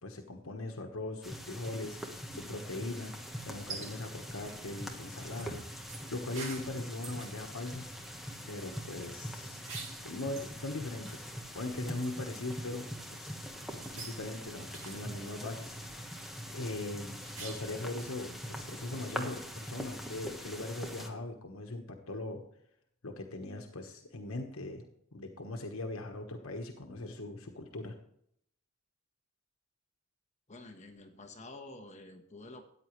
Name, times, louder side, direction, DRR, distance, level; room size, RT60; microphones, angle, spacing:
voice 1, 0.0-2.0 2.3-3.1 3.4-5.6 6.1-7.9 8.5-9.6 10.0-13.4 13.8-15.8 16.2-22.4 23.0-24.8 25.1-27.9, left 2 dB, 80° left, 4 dB, 1.2 m, -40 dB
sound 1, 1.2-21.1, equal, ahead, 1.2 m, -43 dB
sound 2, 2.7-17.9, right 4 dB, 65° right, 2.3 m, -51 dB
voice 2, 30.5-32.6, left 2 dB, 35° left, 5 dB, 1.2 m, -49 dB
13.5 x 9.6 x 3.2 m, 0.70 s
head